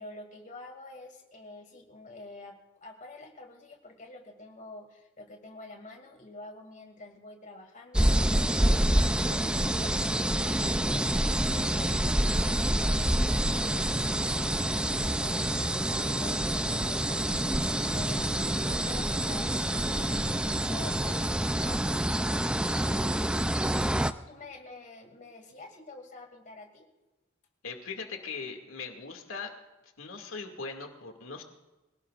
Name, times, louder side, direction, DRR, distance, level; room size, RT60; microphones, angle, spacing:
voice 1, 0.0-17.3 17.6-18.3 18.5-23.4 24.1-26.8, left 2 dB, 40° left, 3 dB, 2.5 m, -48 dB
sound 1, 7.9-24.1, right 1 dB, 5° right, 0.4 m, -27 dB
voice 2, 27.6-29.5 30.0-31.4, left 4 dB, 80° left, 3 dB, 2.3 m, -40 dB
25.5 x 18.0 x 2.5 m, 1.1 s
head